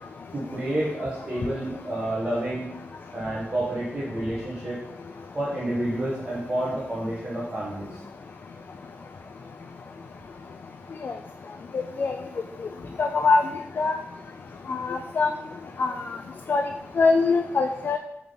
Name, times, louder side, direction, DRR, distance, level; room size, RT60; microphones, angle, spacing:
voice 1, 0.3-2.7 3.1-4.8 5.3-8.0, right 1 dB, 25° right, -7 dB, 1.1 m, -29 dB
voice 2, 13.0-13.4 13.8-14.0 14.7-15.3 15.8-15.9 16.5-16.6 17.0-18.0, left 4 dB, 50° left, 6 dB, 0.3 m, -22 dB
7.1 x 3.6 x 3.8 m, 0.89 s
wide cardioid pair, 175°, 4 cm